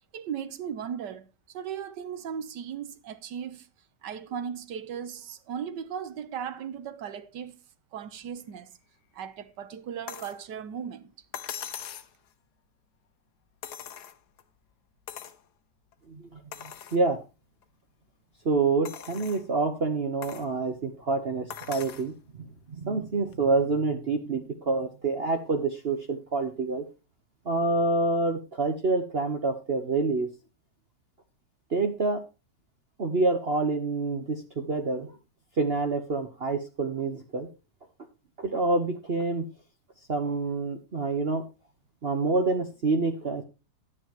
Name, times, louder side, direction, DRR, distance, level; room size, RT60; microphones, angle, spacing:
voice 1, 0.1-3.7 4.0-7.6 7.9-8.7 9.1-11.1, right 8 dB, 80° right, 1.5 m, -37 dB
sound 1, 10.1-10.4 11.3-12.1 13.6-14.4 15.1-15.4 15.9-16.0 16.5-17.0 17.6-17.7 18.9-19.5 20.2-20.5 21.5-22.1 23.3-23.4, left 9 dB, 70° left, 1.4 m, -40 dB
voice 2, 16.1-16.4 16.9-17.2 18.4-22.1 22.7-26.8 27.4-30.3 31.7-32.2 33.0-35.1 35.6-37.5 38.4-39.5 40.1-41.4 42.0-43.4, right 3 dB, 40° right, 1.1 m, -27 dB
11.0 x 9.9 x 2.9 m
omnidirectional pair, 1.9 m